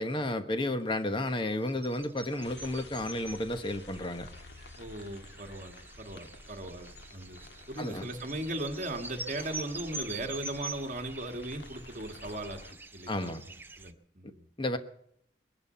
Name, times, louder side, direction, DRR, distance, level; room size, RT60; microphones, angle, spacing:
voice 1, 0.0-4.3 7.8-8.1 13.1-13.4 14.6-14.8, left 1 dB, 30° left, 1.1 m, -32 dB
sound 1, 1.3-13.9, right 3 dB, 10° right, 0.7 m, -46 dB
sound 2, 2.4-12.7, left 2 dB, 75° left, 1.7 m, -51 dB
voice 2, 4.8-12.6 12.9-13.3 13.8-14.5, right 1 dB, 45° right, 1.8 m, -38 dB
sound 3, 9.4-9.9 11.0-11.1 11.6-11.7 12.2-12.8, left 1 dB, 55° left, 7.4 m, -53 dB
21.5 x 11.0 x 5.6 m
head